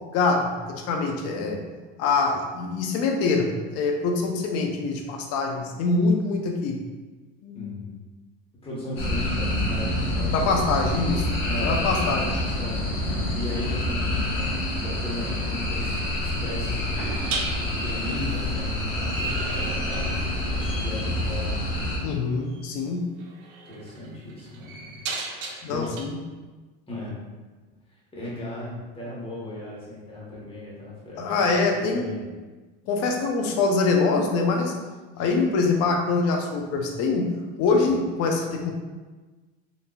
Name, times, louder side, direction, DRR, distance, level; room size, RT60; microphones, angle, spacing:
voice 1, 0.1-1.6 2.0-6.8 7.4-7.8 10.3-11.2 11.6-12.3 22.0-23.1 25.6-26.1 31.2-32.1 32.9-34.7 35.2-37.3 37.6-38.7, left 4 dB, 55° left, 2 dB, 0.6 m, -24 dB
voice 2, 7.5-8.0 8.6-10.5 10.8-10.9 11.4-12.1 12.4-21.7 23.6-25.0 25.3-26.0 26.9-27.2 27.9-32.2, left 1 dB, 20° left, -6 dB, 1.2 m, -37 dB
sound 1, 9.0-22.0, left 1 dB, 90° left, 1.2 m, -27 dB
sound 2, 14.7-14.9 17.3-20.3 20.6-21.0 22.5-22.7 23.2-26.0, right 3 dB, 70° right, 0.7 m, -36 dB
3.9 x 2.6 x 2.3 m, 1.3 s
supercardioid pair, 125°, 29 cm